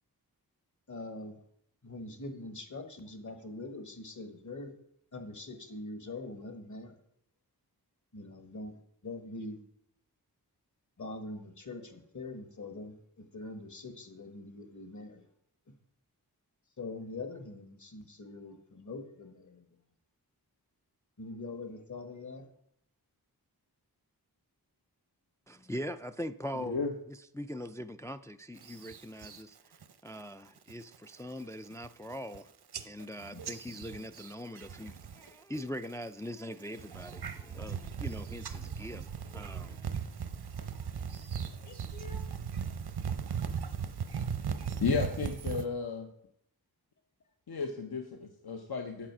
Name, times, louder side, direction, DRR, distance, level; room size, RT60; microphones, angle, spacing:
voice 1, 0.9-1.4 1.8-4.7 5.1-6.9 8.1-8.7 9.0-9.6 11.0-15.2 16.8-19.6 21.2-22.4 33.3-33.4 40.7-40.9 41.6-42.3, left 2 dB, 50° left, 1.4 m, -43 dB
voice 2, 25.5-26.8 27.3-29.6 30.0-32.5 32.8-39.9, equal, 10° left, 0.3 m, -42 dB
voice 3, 26.5-26.9 44.8-46.1 47.5-49.1, left 5 dB, 70° left, 1.0 m, -33 dB
sound 1, 28.6-29.4 29.8-30.2 30.6-31.0 31.4-31.5 31.7-32.4 32.7-35.3 35.6-36.1 36.6-45.7, right 7 dB, 75° right, 0.8 m, -38 dB
8.8 x 7.4 x 6.0 m
wide cardioid pair, 100°, 39 cm